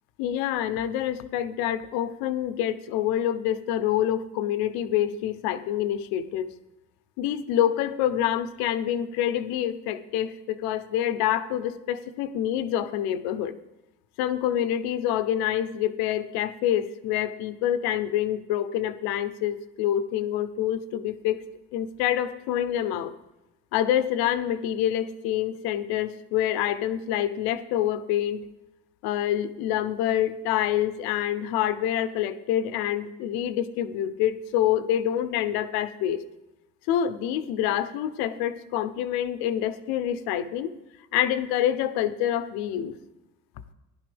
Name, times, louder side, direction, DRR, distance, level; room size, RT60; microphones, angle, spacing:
voice 1, 0.2-6.5 7.2-13.5 14.2-21.4 21.7-23.1 23.7-28.4 29.0-36.2 36.9-40.7 41.1-43.0, left 11 dB, 85° left, 12 dB, 0.9 m, -26 dB
15.5 x 11.5 x 3.5 m, 0.99 s
cardioid pair, 125°, 36 cm